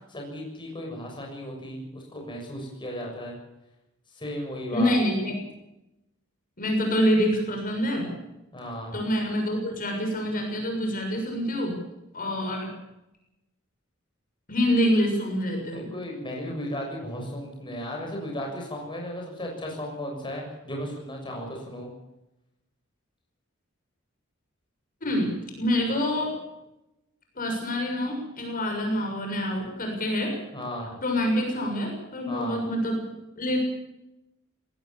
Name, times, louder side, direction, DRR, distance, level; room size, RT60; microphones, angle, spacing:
voice 1, 0.1-3.4 4.1-4.9 8.5-9.0 15.7-21.9 30.5-31.0 32.3-32.6, equal, 25° left, 0 dB, 6.8 m, -35 dB
voice 2, 4.7-5.3 6.6-8.1 8.9-11.8 12.1-12.7 14.5-15.9 25.0-25.3 25.6-26.4 27.4-30.3 31.0-33.0 33.4-33.6, equal, 40° left, 2 dB, 6.9 m, -26 dB
21.5 x 19.5 x 7.3 m, 0.92 s
head